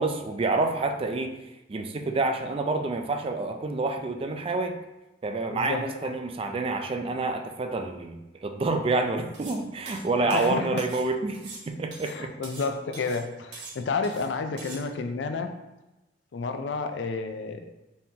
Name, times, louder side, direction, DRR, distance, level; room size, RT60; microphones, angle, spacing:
voice 1, 0.0-1.3 1.7-4.8 5.2-11.4 11.7-12.3, right 3 dB, 30° right, 6 dB, 0.4 m, -28 dB
voice 2, 5.5-6.1 10.2-10.8 12.1-15.5 16.3-17.6, left 4 dB, 90° left, 7 dB, 0.4 m, -31 dB
sound 1, 9.3-9.6 9.9-11.1 11.3-12.7 12.9-13.2 13.5-14.3 14.6-14.8, right 3 dB, 70° right, 1.1 m, -43 dB
4.1 x 3.7 x 2.8 m, 1.0 s
head